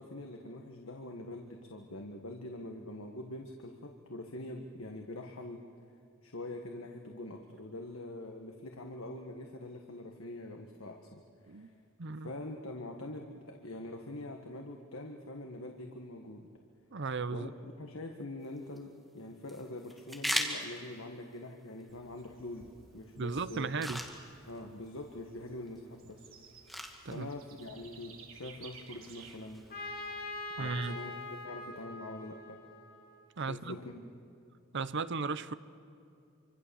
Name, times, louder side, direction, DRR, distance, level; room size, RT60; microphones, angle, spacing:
voice 1, 0.0-5.6 6.2-11.7 12.2-16.5 17.3-23.7 24.5-26.3 27.0-29.6 30.6-32.6 33.5-34.1, left 1 dB, 85° left, 1.6 m, -44 dB
voice 2, 12.0-12.3 16.9-17.5 23.2-24.0 27.0-27.3 30.6-31.0 33.4-33.8 34.7-35.5, right 4 dB, 60° right, 0.8 m, -35 dB
sound 1, 18.4-31.4, equal, ahead, 2.2 m, -44 dB
Bird / Insect, 21.9-30.4, right 5 dB, 80° right, 2.9 m, -56 dB
Trumpet, 29.7-33.4, left 2 dB, 45° left, 2.7 m, -43 dB
26.5 x 25.5 x 7.1 m
head